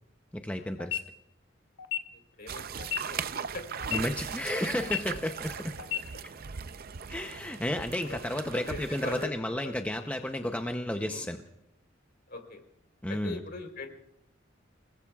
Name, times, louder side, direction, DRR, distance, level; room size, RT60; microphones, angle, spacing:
voice 1, 0.3-1.0 3.9-5.8 7.1-11.4 13.0-13.4, left 1 dB, 10° left, 5 dB, 0.7 m, -32 dB
sound 1, 0.8-1.0 1.8-2.0 2.8-3.0 3.8-4.0 4.8-5.0 5.8-6.0, left 10 dB, 80° left, 1.0 m, -31 dB
voice 2, 2.4-3.6 5.1-5.2 8.0-8.2 8.5-9.3 9.6-9.7 11.0-11.3 12.3-12.6 13.1-13.9, left 2 dB, 55° left, 4 dB, 3.7 m, -41 dB
sound 2, 2.5-9.2, right 7 dB, 50° right, 0.6 m, -39 dB
29.0 x 20.0 x 2.4 m, 0.86 s
head